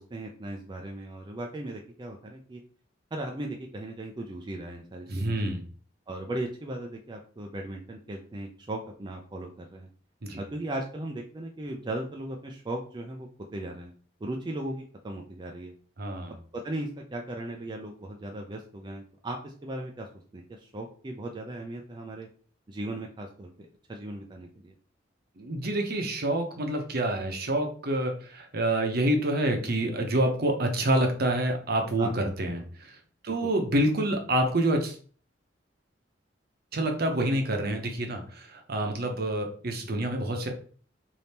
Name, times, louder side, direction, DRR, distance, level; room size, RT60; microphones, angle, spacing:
voice 1, 0.0-2.6 3.1-5.4 6.1-9.9 10.3-13.9 14.2-15.7 16.3-22.3 22.7-24.7 32.0-32.1 33.3-33.5, right 1 dB, 25° right, 1 dB, 0.4 m, -37 dB
voice 2, 5.1-5.6 10.2-10.4 16.0-16.3 25.4-33.0 33.2-35.0 36.7-40.5, right 1 dB, 55° right, 4 dB, 0.8 m, -27 dB
3.5 x 2.7 x 4.1 m, 0.43 s
head